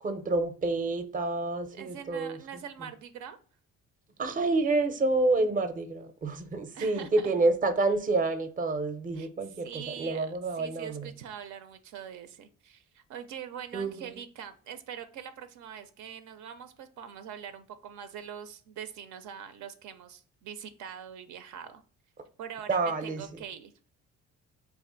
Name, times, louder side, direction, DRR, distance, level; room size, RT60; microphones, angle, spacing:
voice 1, 0.0-2.6 4.2-11.1 13.7-14.1 22.7-23.3, right 3 dB, 25° right, 0.5 m, -28 dB
voice 2, 1.7-3.4 6.7-7.3 9.1-9.3 9.6-21.8 22.4-23.7, right 8 dB, 80° right, 0.5 m, -43 dB
3.3 x 2.5 x 3.8 m
cardioid pair, 90°, 30 cm